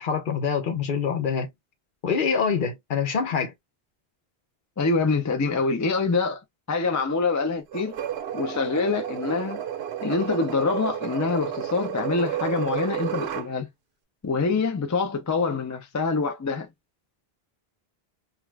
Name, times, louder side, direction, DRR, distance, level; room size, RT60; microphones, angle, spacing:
voice 1, 0.0-1.5 2.0-3.5, left 6 dB, 60° left, 0.8 m, -25 dB
voice 2, 4.8-6.4 6.7-8.0 8.3-9.6 10.0-13.7 14.2-16.7, left 4 dB, 25° left, 0.4 m, -25 dB
sound 1, 7.7-13.5, right 10 dB, 85° right, 0.9 m, -31 dB
2.4 x 2.3 x 3.2 m
omnidirectional pair, 1.0 m